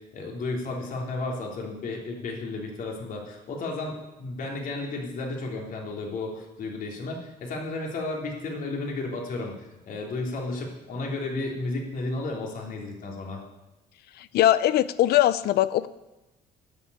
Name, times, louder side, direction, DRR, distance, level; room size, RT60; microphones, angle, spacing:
voice 1, 0.1-13.4, left 2 dB, 55° left, 0 dB, 3.3 m, -33 dB
voice 2, 14.3-15.9, left 13 dB, 70° left, 16 dB, 0.7 m, -21 dB
12.5 x 7.0 x 9.6 m, 1.0 s
cardioid pair, 110°, 17 cm